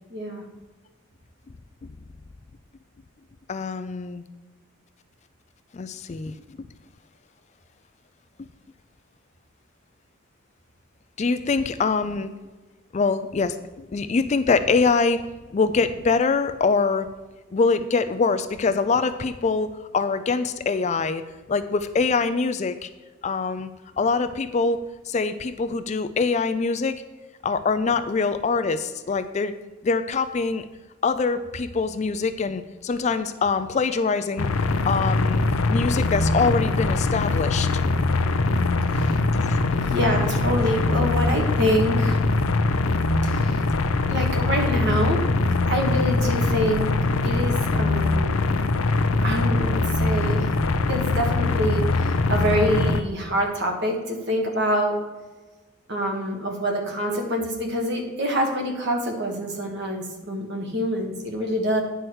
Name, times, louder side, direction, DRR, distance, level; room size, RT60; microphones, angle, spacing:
voice 1, 0.1-0.4 38.9-39.2 39.9-42.2 43.2-43.6 44.1-45.2 45.6-46.9 47.2-48.4 49.2-50.5 50.9-55.0 55.9-61.8, equal, 55° right, 2 dB, 1.6 m, -26 dB
voice 2, 3.5-4.2 5.7-6.3 11.2-12.3 12.9-15.3 15.5-17.1 17.5-19.7 19.9-21.2 21.5-22.9 23.2-23.7 24.0-24.8 25.1-27.0 27.4-29.5 29.8-30.7 31.0-34.5 34.9-37.7 39.4-39.6 50.4-50.5 52.0-52.1, left 4 dB, 35° left, 11 dB, 0.3 m, -24 dB
sound 1, 34.4-53.0, left 3 dB, 80° left, 0.6 m, -22 dB
9.5 x 4.5 x 6.2 m, 1.2 s
head